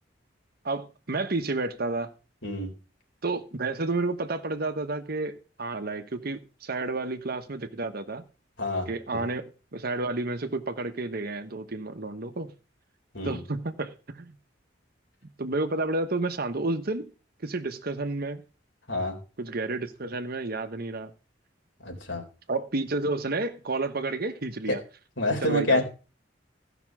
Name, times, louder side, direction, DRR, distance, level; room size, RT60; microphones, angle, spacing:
voice 1, 0.6-2.1 3.2-8.2 8.9-12.5 13.2-14.4 15.4-17.1 17.4-18.4 19.4-21.1 22.5-24.8 25.4-25.8, right 2 dB, 55° right, 1.1 m, -31 dB
voice 2, 8.6-9.2 13.1-13.4 18.9-19.2 21.8-22.2 24.7-24.8 25.2-25.8, left 1 dB, 80° left, 3.8 m, -27 dB
15.0 x 6.0 x 6.0 m
head